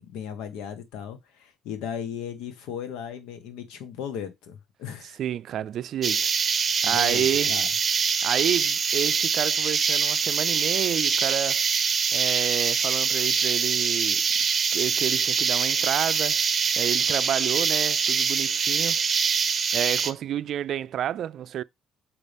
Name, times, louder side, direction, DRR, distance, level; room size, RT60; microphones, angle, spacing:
voice 1, 0.0-5.2 6.8-7.7, left 8 dB, 85° left, 1.5 m, -36 dB
voice 2, 5.2-6.3 6.8-7.5 8.2-11.6 12.1-14.3 14.7-16.4 16.8-19.0 19.7-21.6, right 10 dB, 60° right, 0.4 m, -29 dB
sound 1, 6.0-20.1, right 6 dB, 35° right, 0.8 m, -24 dB
6.8 x 5.4 x 3.5 m
cardioid pair, 115°, 0 cm